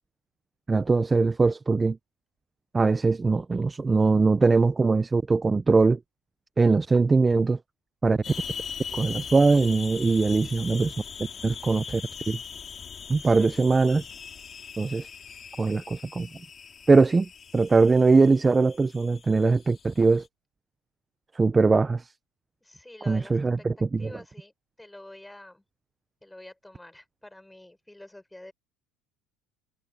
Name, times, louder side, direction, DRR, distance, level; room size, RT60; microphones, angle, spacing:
voice 1, 0.7-2.0 2.7-6.0 6.6-7.6 8.0-8.2 8.9-10.9 11.4-12.0 12.3-12.4 13.1-14.0 14.8-15.1 15.6-16.3 16.9-20.2 21.3-22.1 23.1-24.1, right 4 dB, 15° right, 0.5 m, -21 dB
sound 1, 8.2-20.3, left 7 dB, 25° left, 2.2 m, -41 dB
voice 2, 13.1-13.8 22.6-23.7 24.0-24.5 24.8-25.6 26.2-28.5, left 1 dB, 5° left, 5.3 m, -47 dB
cardioid pair, 160°, 0 cm